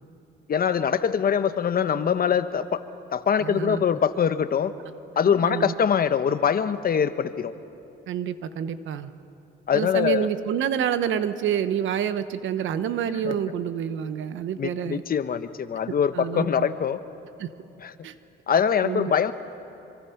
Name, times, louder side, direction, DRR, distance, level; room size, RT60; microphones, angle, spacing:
voice 1, 0.5-2.8 3.1-4.7 5.2-7.5 9.7-10.3 13.2-13.3 14.6-17.0 17.8-17.9 18.5-19.3, left 7 dB, 50° left, 12 dB, 1.0 m, -23 dB
voice 2, 3.4-3.8 5.3-5.7 8.1-9.1 9.7-15.0 16.1-16.7 17.4-17.5 18.0-18.2 18.8-19.1, right 9 dB, 75° right, 12 dB, 1.0 m, -28 dB
25.0 x 24.5 x 5.8 m, 2.8 s
cardioid pair, 90°, 20 cm